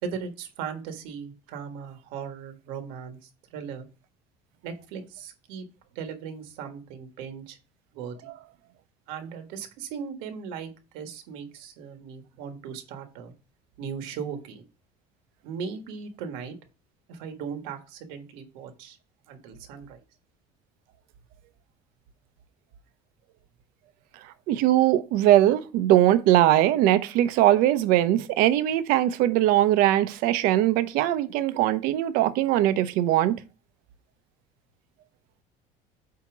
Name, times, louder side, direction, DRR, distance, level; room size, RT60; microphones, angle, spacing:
voice 1, 0.0-3.9 4.6-5.6 5.9-7.6 7.9-8.3 9.1-13.3 13.8-14.6 15.4-16.6 17.1-19.0 19.3-20.0, right 6 dB, 85° right, 1.5 m, -38 dB
voice 2, 24.5-33.4, right 13 dB, 70° right, 0.7 m, -21 dB
8.4 x 2.9 x 6.0 m
cardioid pair, 150°, 15 cm